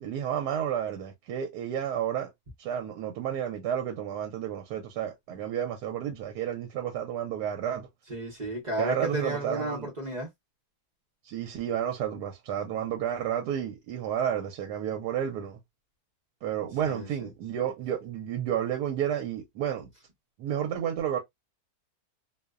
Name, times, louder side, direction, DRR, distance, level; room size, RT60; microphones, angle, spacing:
voice 1, 0.0-2.3 2.6-7.9 8.8-9.9 11.2-15.6 16.4-19.9 20.4-21.2, right 9 dB, 85° right, 1.1 m, -31 dB
voice 2, 8.1-10.3 16.8-17.3, right 1 dB, 45° right, 0.6 m, -33 dB
2.7 x 2.0 x 2.3 m
omnidirectional pair, 1.7 m